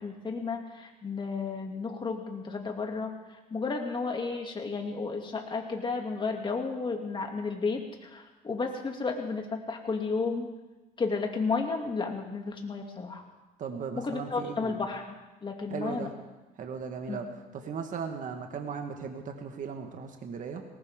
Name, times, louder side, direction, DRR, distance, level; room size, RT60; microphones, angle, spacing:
voice 1, 0.0-3.2 3.5-10.5 11.0-13.2 14.0-15.2 15.4-16.1 17.1-17.2, left 4 dB, 30° left, 2 dB, 2.5 m, -32 dB
voice 2, 13.6-14.8 15.7-16.1 16.6-17.3 17.6-20.6, right 6 dB, 50° right, 4 dB, 1.6 m, -37 dB
19.5 x 18.5 x 3.7 m, 1.1 s
cardioid pair, 110°, 17 cm